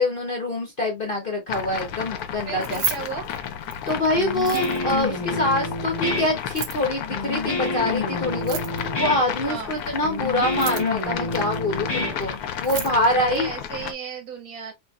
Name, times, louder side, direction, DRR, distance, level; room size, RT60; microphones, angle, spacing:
voice 1, 0.0-2.8 3.9-13.5, left 1 dB, 55° left, 0.6 m, -25 dB
sound 1, 1.5-13.9, left 8 dB, 70° left, 0.9 m, -32 dB
voice 2, 2.5-3.3 9.4-9.7 13.1-14.7, right 6 dB, 60° right, 1.0 m, -34 dB
Keys jangling, 2.5-3.9 4.3-5.0 6.4-6.9 8.3-9.0 10.4-11.1 12.2-12.3 12.5-13.0, right 7 dB, 90° right, 1.4 m, -32 dB
Guitar, 4.2-12.8, left 2 dB, 30° left, 0.9 m, -29 dB
3.1 x 3.0 x 2.3 m
omnidirectional pair, 2.0 m